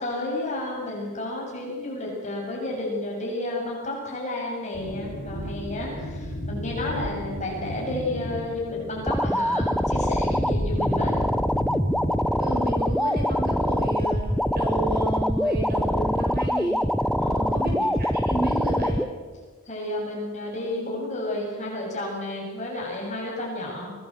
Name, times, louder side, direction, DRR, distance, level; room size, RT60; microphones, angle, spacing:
voice 1, 0.0-11.2 17.2-17.9 19.7-23.9, left 1 dB, 30° left, -2 dB, 7.1 m, -31 dB
sound 1, 4.7-12.2, left 1 dB, 75° left, 5.6 m, -34 dB
sound 2, 9.1-19.1, equal, ahead, 0.6 m, -24 dB
voice 2, 12.4-16.8 17.2-19.0, right 1 dB, 45° right, 0 dB, 6.8 m, -31 dB
23.5 x 19.0 x 7.7 m, 1.5 s
head